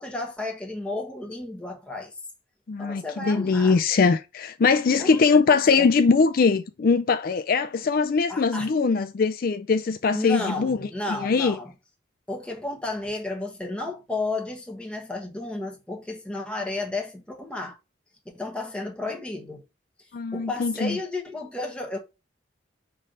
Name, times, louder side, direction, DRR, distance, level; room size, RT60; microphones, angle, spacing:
voice 1, 0.0-2.2 2.8-3.8 5.0-5.9 8.3-8.7 10.1-11.7 12.3-17.8 18.3-19.6 20.3-22.0, left 2 dB, 5° left, 1.3 m, -32 dB
voice 2, 2.7-11.6 20.1-21.0, left 4 dB, 50° left, 0.4 m, -22 dB
5.8 x 3.2 x 5.1 m
head